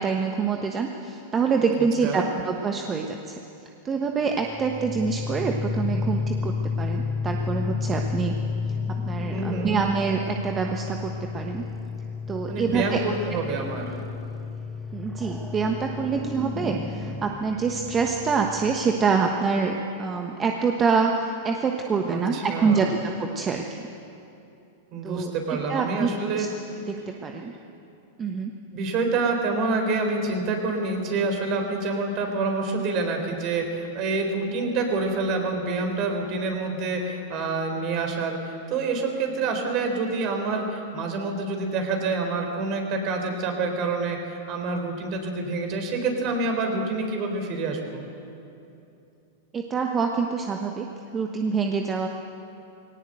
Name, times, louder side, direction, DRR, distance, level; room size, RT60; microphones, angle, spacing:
voice 1, 0.0-3.4 3.8-8.4 9.1-11.7 12.3-13.0 14.9-23.8 25.0-26.5 26.9-27.5 28.2-28.5 49.5-50.9 51.1-52.1, right 5 dB, 25° right, 3 dB, 1.3 m, -26 dB
voice 2, 1.8-2.3 9.3-9.7 12.5-14.0 22.1-22.9 24.9-26.5 28.7-48.0, right 3 dB, 45° right, 3 dB, 4.0 m, -27 dB
sound 1, 4.3-18.9, left 4 dB, 5° right, 1.8 m, -31 dB
19.0 x 18.0 x 8.0 m, 2.8 s
hypercardioid pair, 110°, 0 cm